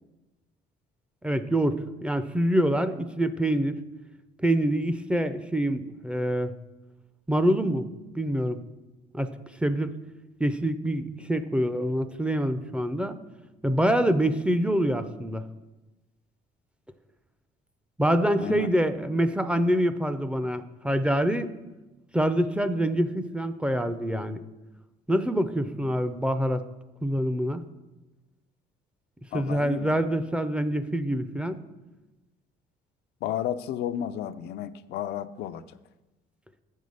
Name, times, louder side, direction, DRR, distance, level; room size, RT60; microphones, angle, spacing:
voice 1, 1.2-3.8 4.4-6.5 7.3-7.9 8.2-8.6 9.1-9.3 9.6-9.9 10.4-13.2 13.6-15.4 18.0-21.5 22.1-24.4 25.1-26.6 27.0-27.6 29.3-31.6, right 1 dB, 5° right, 11 dB, 0.5 m, -25 dB
voice 2, 18.4-18.7 29.3-29.9 33.2-35.6, left 11 dB, 75° left, 11 dB, 0.4 m, -32 dB
7.7 x 5.4 x 6.4 m, 1.1 s
cardioid pair, 110°, 17 cm